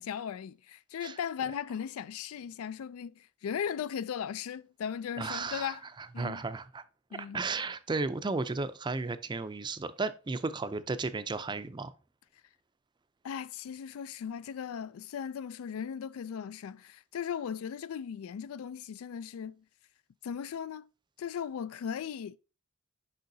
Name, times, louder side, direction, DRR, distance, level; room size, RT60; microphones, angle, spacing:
voice 1, 0.0-5.8 6.1-6.4 7.1-7.4 13.2-19.6 20.2-20.9 21.2-22.4, left 8 dB, 85° left, 0.3 m, -37 dB
voice 2, 5.2-6.8 7.1-11.9, right 3 dB, 20° right, 0.4 m, -34 dB
6.6 x 5.5 x 2.7 m
head